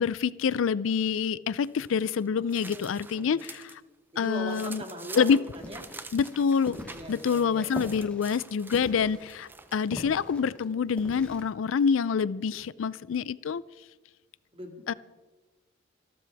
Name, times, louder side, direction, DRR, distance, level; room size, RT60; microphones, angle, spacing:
voice 1, 0.0-3.8 4.2-4.8 5.2-5.4 6.1-6.8 7.1-13.6 14.9-15.0, left 6 dB, 80° left, 20 dB, 0.4 m, -26 dB
sound 1, 1.6-3.8 4.1-9.9, right 3 dB, 10° right, 0.6 m, -47 dB
voice 2, 2.6-3.4 4.1-5.8 6.9-8.0 14.5-14.9, equal, 30° right, 3 dB, 2.1 m, -41 dB
sound 2, 5.5-11.4, left 1 dB, 5° left, 2.0 m, -42 dB
26.0 x 12.5 x 3.4 m, 1.2 s
head